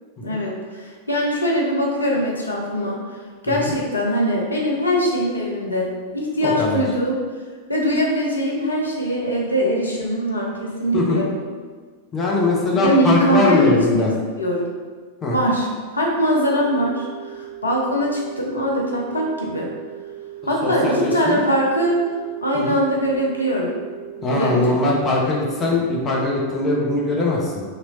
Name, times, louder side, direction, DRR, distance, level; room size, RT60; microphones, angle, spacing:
voice 1, 0.2-3.2 3.4-7.2 7.7-11.3 12.7-14.7 15.3-19.7 20.5-22.0 22.4-23.8 24.3-24.8, equal, 80° left, -2 dB, 0.6 m, -22 dB
voice 2, 6.4-6.8 10.9-11.2 12.1-14.1 15.2-15.4 20.6-21.4 22.5-22.8 24.2-27.6, left 2 dB, 25° left, -4 dB, 0.6 m, -21 dB
sound 1, 16.4-26.4, right 13 dB, 20° right, 1.1 m, -38 dB
3.0 x 2.9 x 2.6 m, 1.5 s
figure-of-eight pair, 90°, 0 cm